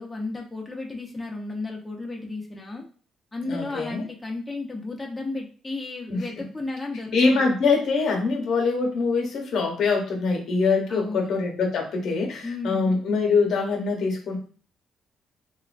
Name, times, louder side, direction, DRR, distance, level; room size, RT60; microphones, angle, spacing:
voice 1, 0.0-2.9 3.3-7.4 10.9-11.3 12.4-12.9, left 3 dB, 15° left, -1 dB, 0.6 m, -33 dB
voice 2, 3.5-4.0 6.1-6.5 7.1-14.4, left 4 dB, 70° left, 2 dB, 0.8 m, -24 dB
2.9 x 2.2 x 2.4 m, 0.41 s
cardioid pair, 90°, 0 cm